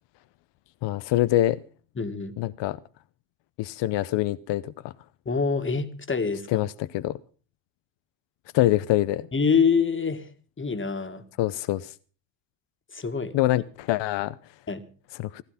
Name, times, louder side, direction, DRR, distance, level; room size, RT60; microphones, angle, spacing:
voice 1, 0.8-1.6 2.4-2.8 3.6-4.7 6.5-7.2 8.5-9.3 11.4-11.9 13.3-14.3 15.2-15.4, left 15 dB, 60° left, 0.8 m, -24 dB
voice 2, 2.0-2.3 5.3-6.6 9.3-10.3 10.6-11.2 12.9-13.3 14.7-14.8, left 5 dB, 25° left, 2.1 m, -25 dB
16.0 x 12.5 x 5.7 m
supercardioid pair, 70°, 48 cm